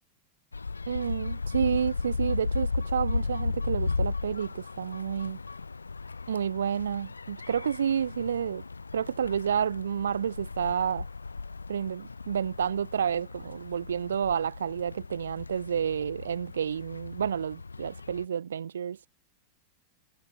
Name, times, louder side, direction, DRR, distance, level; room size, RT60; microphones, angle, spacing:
sound 1, 0.5-18.3, left 4 dB, 80° left, 0.9 m, -35 dB
voice 1, 0.9-5.4 6.3-8.6 8.9-11.1 11.7-19.0, right 8 dB, 65° right, 1.8 m, -30 dB
figure-of-eight pair, 90°, 0 cm